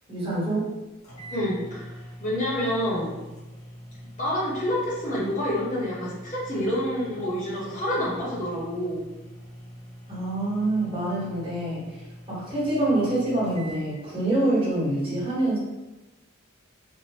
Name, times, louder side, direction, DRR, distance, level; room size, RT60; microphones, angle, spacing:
voice 1, 0.1-0.6 10.1-15.6, right 1 dB, 25° right, -10 dB, 1.1 m, -26 dB
sound 1, 0.7-0.8 1.0-13.8, equal, 85° left, 0.9 m, -44 dB
voice 2, 1.3-3.2 4.2-9.1, equal, 35° left, -6 dB, 0.8 m, -28 dB
2.7 x 2.1 x 3.2 m, 1.1 s
head